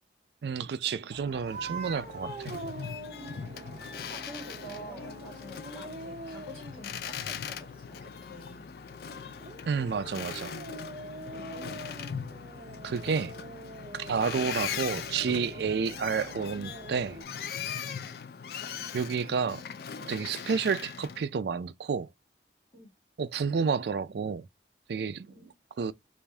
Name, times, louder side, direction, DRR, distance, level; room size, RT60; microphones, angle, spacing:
voice 1, 0.4-2.5 9.7-10.5 12.8-13.3 13.9-17.2 18.9-19.6 20.0-22.1 23.2-24.5 24.9-25.3 25.8-25.9, right 5 dB, 65° right, 0.4 m, -30 dB
sound 1, 1.1-17.2, right 2 dB, 40° right, 0.7 m, -45 dB
Boat Water vehicle, 1.4-21.3, left 7 dB, 55° left, 0.3 m, -40 dB
voice 2, 3.1-8.7 11.1-12.1 17.7-17.9 22.7-22.9 25.3-25.6, right 1 dB, 40° left, 1.4 m, -48 dB
3.4 x 2.5 x 3.3 m
head